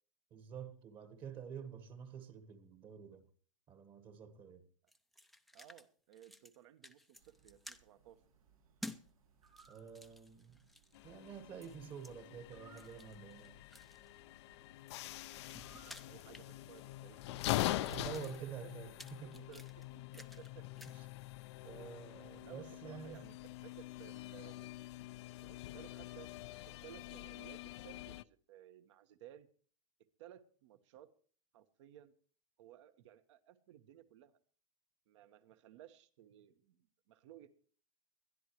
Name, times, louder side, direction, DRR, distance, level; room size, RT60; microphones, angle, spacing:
voice 1, 0.3-3.3 3.7-4.7 9.7-10.6 11.0-13.6 17.6-19.3 20.9-21.0 21.6-23.3, right 7 dB, 30° right, 1.4 m, -49 dB
sound 1, 4.9-5.9 6.1-6.6 6.8-7.8 8.8-9.0 9.4-11.0 11.6-12.1 12.7-14.1 14.8-16.9 17.2-20.5 20.8-21.0, left 1 dB, ahead, 0.6 m, -54 dB
voice 2, 5.5-8.2 16.1-17.7 18.4-18.7 19.2-20.7 22.4-24.8 25.4-26.3 26.7-29.5 30.2-31.1 31.5-32.1 32.6-34.4 35.1-37.5, right 11 dB, 60° right, 1.3 m, -58 dB
sound 2, 7.1-17.8, right 6 dB, 90° right, 3.7 m, -68 dB
sound 3, 10.9-28.2, left 17 dB, 55° left, 0.6 m, -44 dB
21.5 x 12.0 x 3.1 m
hypercardioid pair, 140°, 17 cm